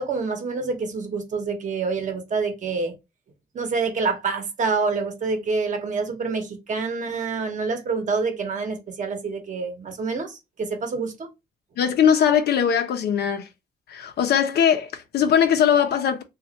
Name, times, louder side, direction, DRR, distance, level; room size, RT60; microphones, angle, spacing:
voice 1, 0.0-2.9 3.5-11.3, right 4 dB, 50° right, 0.9 m, -27 dB
voice 2, 11.8-13.5 13.9-16.2, left 8 dB, 85° left, 0.7 m, -20 dB
3.1 x 2.4 x 4.0 m
cardioid pair, 125°, 16 cm